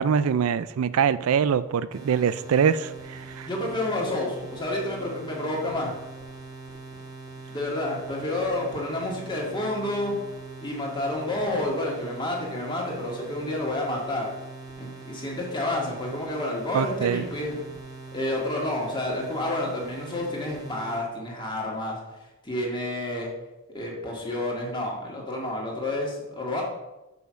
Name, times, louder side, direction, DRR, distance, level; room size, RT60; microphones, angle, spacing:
voice 1, 0.0-2.9 3.4-3.5 16.7-17.2, right 7 dB, 85° right, 15 dB, 0.4 m, -23 dB
sound 1, 1.9-21.0, right 3 dB, 20° right, 1.7 m, -42 dB
voice 2, 3.4-5.9 7.5-10.1 10.6-14.3 14.8-17.6 18.1-22.0 22.4-23.3 23.7-26.6, left 1 dB, 20° left, -2 dB, 2.0 m, -29 dB
6.3 x 5.6 x 6.2 m, 1.0 s
head